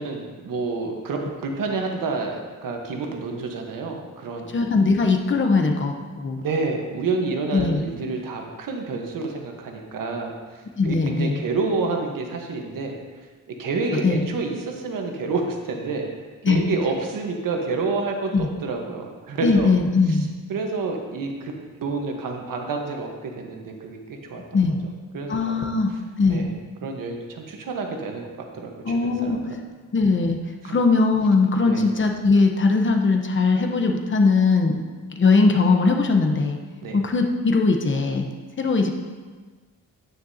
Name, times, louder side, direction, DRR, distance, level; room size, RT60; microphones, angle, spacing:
voice 1, 0.0-4.5 6.4-10.3 10.8-13.0 13.6-16.1 16.5-19.7 20.1-20.2 20.5-21.5 21.8-24.6 25.1-25.8 26.3-26.5 26.8-29.6 30.6-30.8 31.6-31.8 36.8-37.0, right 3 dB, 85° right, 2 dB, 1.3 m, -29 dB
voice 2, 4.5-6.4 7.5-7.8 10.8-11.4 13.9-14.2 16.4-16.6 18.3-18.5 19.4-20.3 24.5-24.8 25.3-26.5 28.8-29.4 29.9-30.4 30.7-34.8 35.2-36.6 36.9-38.3 38.6-38.9, left 4 dB, 35° left, 4 dB, 0.9 m, -20 dB
9.3 x 9.3 x 2.8 m, 1.4 s
wide cardioid pair, 125°, 32 cm